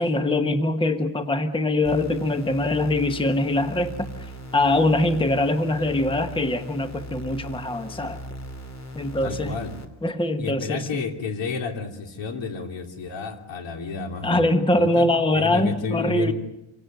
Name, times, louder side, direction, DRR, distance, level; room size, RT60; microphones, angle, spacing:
voice 1, 0.0-8.2 8.9-9.6 10.0-11.0 14.2-16.3, left 1 dB, 10° left, 9 dB, 1.2 m, -23 dB
sound 1, 1.8-9.8, equal, 35° left, 3.1 m, -38 dB
voice 2, 9.2-9.7 10.4-16.3, left 4 dB, 65° left, 6 dB, 3.3 m, -31 dB
27.0 x 17.5 x 9.2 m, 0.91 s
cardioid pair, 130°, 48 cm